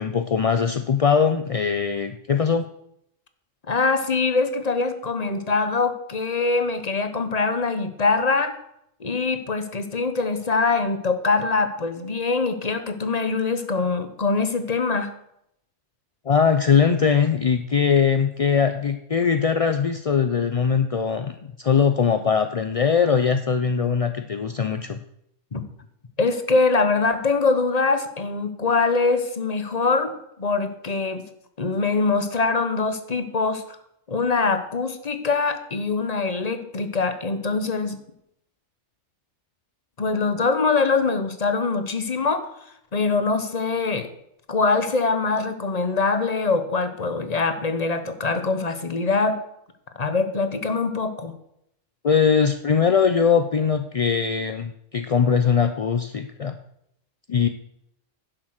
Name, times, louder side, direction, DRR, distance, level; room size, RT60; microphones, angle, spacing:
voice 1, 0.0-2.6 16.3-25.0 52.0-56.6 57.3-57.5, left 6 dB, 55° left, 8 dB, 0.4 m, -21 dB
voice 2, 3.7-8.6 9.0-15.1 25.5-25.6 26.2-31.2 31.6-33.6 34.1-38.0 40.0-42.5 42.9-44.1 44.5-49.4 50.0-51.3, left 4 dB, 35° left, 9 dB, 1.1 m, -23 dB
10.5 x 7.7 x 6.5 m, 0.75 s
omnidirectional pair, 1.3 m